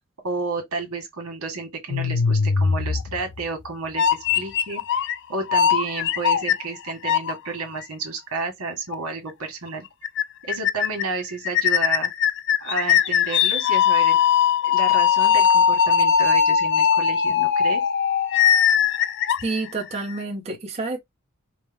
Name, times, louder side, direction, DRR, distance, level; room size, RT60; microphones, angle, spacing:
voice 1, 0.2-9.8 10.4-12.1 12.6-14.2 14.6-17.8, right 3 dB, 80° right, 1.5 m, -31 dB
sound 1, 1.9-3.5 4.0-5.2 5.5-7.3 7.8-7.9 8.9-9.0 9.3-9.4 9.7-9.8 10.0-10.2 10.5-11.0 11.4-20.1, left 8 dB, 55° left, 0.5 m, -20 dB
voice 2, 19.4-21.0, right 3 dB, 30° right, 1.0 m, -29 dB
4.8 x 2.2 x 3.4 m
head